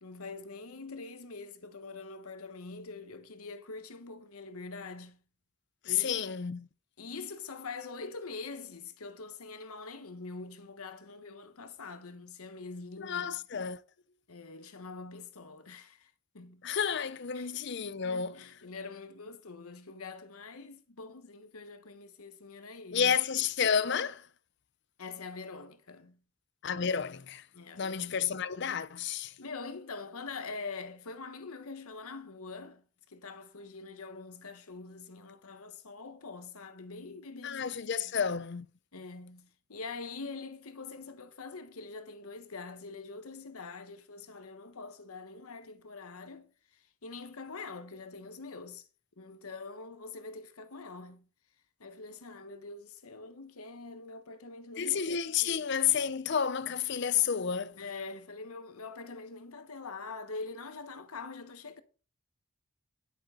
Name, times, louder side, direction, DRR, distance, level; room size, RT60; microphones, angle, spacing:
voice 1, 0.0-5.2 5.8-6.2 7.0-13.4 14.3-16.6 17.3-17.5 18.0-23.2 25.0-26.2 27.5-28.2 29.4-37.7 38.0-38.3 38.9-48.9 49.2-51.3 51.8-55.7 57.8-61.8, left 4 dB, 80° left, 1.1 m, -44 dB
voice 2, 5.9-6.7 13.0-13.8 16.6-18.5 22.9-24.3 26.6-27.4 27.8-29.3 37.4-38.7 54.8-57.8, left 7 dB, 50° left, 0.5 m, -30 dB
10.5 x 8.3 x 3.8 m
head